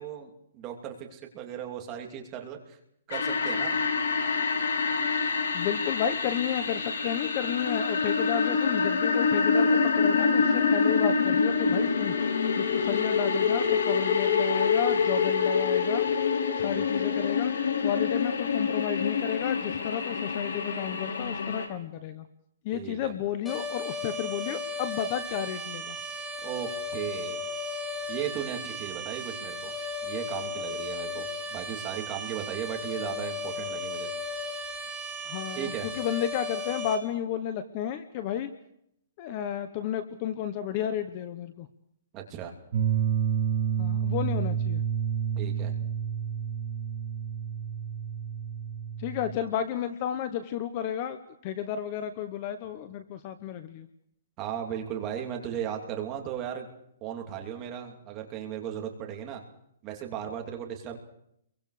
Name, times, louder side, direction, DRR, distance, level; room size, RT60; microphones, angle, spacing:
voice 1, 0.0-2.8 3.1-3.8 16.7-16.9 22.7-23.1 26.4-27.5 28.1-29.7 30.0-34.1 35.5-35.9 42.1-42.5 45.3-45.7 54.4-56.7 57.0-59.4 59.8-61.0, right 9 dB, 15° right, 2 dB, 2.9 m, -36 dB
sound 1, 3.1-21.7, left 5 dB, 85° left, 5.6 m, -26 dB
voice 2, 5.5-12.1 12.6-16.1 16.6-17.5 17.8-22.3 22.6-26.0 35.2-38.5 39.2-41.7 43.8-44.8 49.0-51.2 51.4-53.9, left 10 dB, 25° left, 10 dB, 1.0 m, -32 dB
sound 2, 23.5-37.0, left 2 dB, 5° left, 2.7 m, -35 dB
sound 3, 42.7-49.4, right 8 dB, 40° right, 2.1 m, -29 dB
29.5 x 23.5 x 5.0 m, 0.74 s
hypercardioid pair, 180°, 0 cm